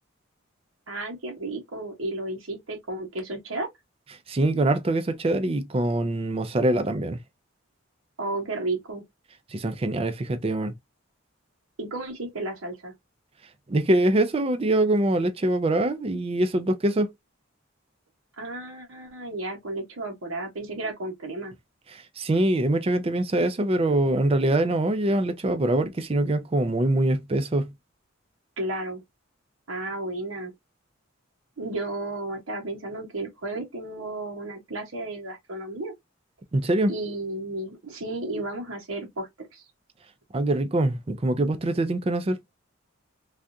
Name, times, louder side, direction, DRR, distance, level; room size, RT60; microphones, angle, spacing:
voice 1, 0.9-3.7 8.2-9.0 11.8-12.9 18.4-21.5 28.6-29.0 29.7-30.5 31.6-35.9 36.9-39.6, right 2 dB, 90° right, 1.1 m, -33 dB
voice 2, 4.3-7.2 9.5-10.7 13.7-17.1 21.9-27.7 36.5-36.9 40.3-42.4, right 1 dB, 30° right, 0.4 m, -24 dB
3.4 x 2.4 x 2.6 m
head